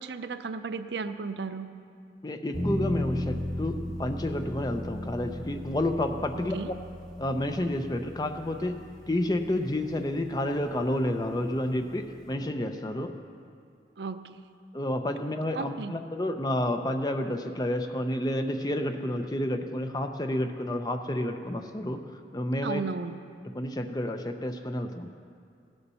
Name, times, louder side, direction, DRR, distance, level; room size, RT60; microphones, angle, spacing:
voice 1, 0.0-1.7 6.5-6.7 14.0-14.4 15.5-16.0 22.6-23.2, right 4 dB, 75° right, 10 dB, 0.5 m, -34 dB
voice 2, 2.2-6.5 7.2-8.7 9.1-13.1 14.7-22.0 22.3-22.8 23.5-25.1, left 1 dB, 20° left, 6 dB, 0.5 m, -30 dB
sound 1, 2.5-12.3, left 1 dB, 50° left, 1.7 m, -37 dB
16.5 x 6.9 x 5.5 m, 2.3 s
head